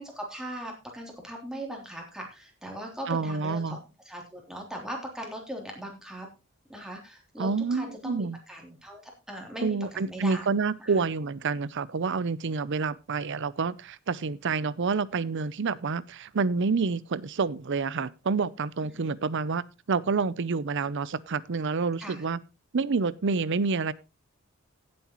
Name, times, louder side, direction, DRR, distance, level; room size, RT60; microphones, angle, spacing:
voice 1, 0.0-3.8 4.0-6.3 6.7-10.4 10.8-11.0 18.9-19.1 22.0-22.2, right 1 dB, 5° right, 3.1 m, -39 dB
voice 2, 3.1-3.8 7.4-8.4 9.6-22.4 22.7-23.9, right 4 dB, 60° right, 0.6 m, -28 dB
16.5 x 7.7 x 3.0 m
head